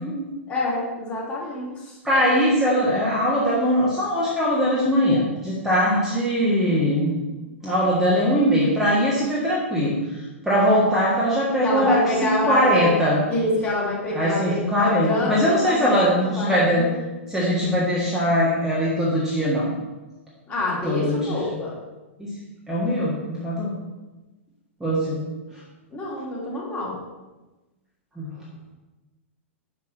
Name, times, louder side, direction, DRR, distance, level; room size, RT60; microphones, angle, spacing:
voice 1, 0.5-2.0 11.6-12.9 13.3-15.9 16.2-17.0 20.5-21.7 25.9-26.9, left 1 dB, 20° left, -6 dB, 2.9 m, -27 dB
voice 2, 2.0-7.1 7.6-13.2 14.1-16.8 17.3-19.7 20.8-21.4 22.2-22.4 22.7-23.7 24.8-25.2 28.2-28.3, equal, 5° right, -7 dB, 1.7 m, -21 dB
7.2 x 6.2 x 4.4 m, 1.1 s
figure-of-eight pair, 105°, 7 cm